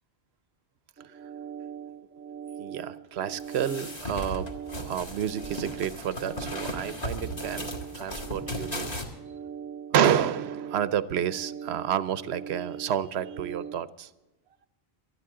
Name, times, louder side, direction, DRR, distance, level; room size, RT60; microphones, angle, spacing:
sound 1, 1.0-13.8, right 7 dB, 15° right, 0.6 m, -41 dB
voice 1, 2.6-4.5 4.8-8.9 9.9-14.1, right 9 dB, 90° right, 15 dB, 0.9 m, -29 dB
sound 2, 3.4-9.0, left 1 dB, 40° left, 1.9 m, -36 dB
19.5 x 13.0 x 3.7 m, 1.0 s
omnidirectional pair, 1.0 m